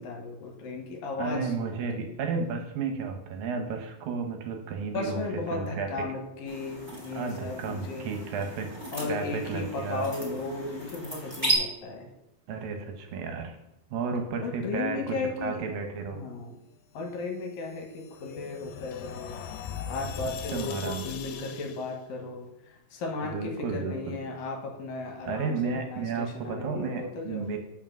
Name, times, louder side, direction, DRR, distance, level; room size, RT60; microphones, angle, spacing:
voice 1, 0.0-2.2 4.9-8.1 8.9-12.1 14.4-15.6 16.1-16.6 16.9-19.4 19.9-27.6, left 3 dB, 70° left, 2 dB, 2.9 m, -35 dB
voice 2, 1.2-5.2 5.5-5.9 7.1-8.7 9.1-10.0 12.5-13.5 13.9-15.2 15.4-16.2 20.5-21.0 23.3-24.2 25.3-27.6, right 5 dB, 75° right, 5 dB, 2.6 m, -32 dB
sound 1, 6.4-11.5, right 2 dB, 10° right, 1.9 m, -35 dB
sound 2, 17.4-21.9, left 8 dB, 90° left, 2.7 m, -40 dB
7.3 x 5.8 x 6.1 m, 0.88 s
omnidirectional pair, 4.2 m